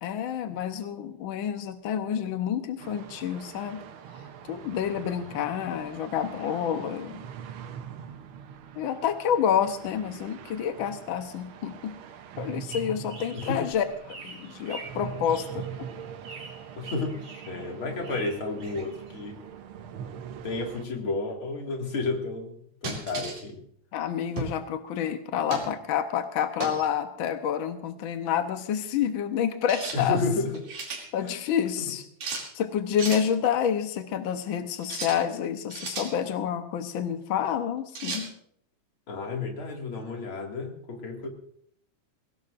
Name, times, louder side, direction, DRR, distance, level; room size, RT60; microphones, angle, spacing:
voice 1, 0.0-3.8 4.5-7.2 8.8-12.0 12.4-15.9 23.9-30.2 31.1-32.0 32.3-38.3, left 8 dB, 80° left, 7 dB, 1.1 m, -28 dB
sound 1, 2.8-20.9, right 8 dB, 90° right, 1.1 m, -43 dB
sound 2, 12.4-19.5, right 3 dB, 55° right, 3.3 m, -46 dB
voice 2, 16.8-19.4 20.4-23.6 29.9-30.6 31.2-31.4 31.8-31.9 39.1-41.3, left 3 dB, 45° left, 1 dB, 2.8 m, -32 dB
sound 3, 22.8-23.4 24.4-24.6 25.5-25.7 26.6-26.9 29.7-30.0 30.5-31.0 32.2-32.5 33.0-33.3 34.8-35.2 35.7-36.1 38.0-38.3, right 3 dB, 70° right, 4.1 m, -34 dB
22.0 x 17.5 x 2.6 m, 0.65 s
omnidirectional pair, 3.5 m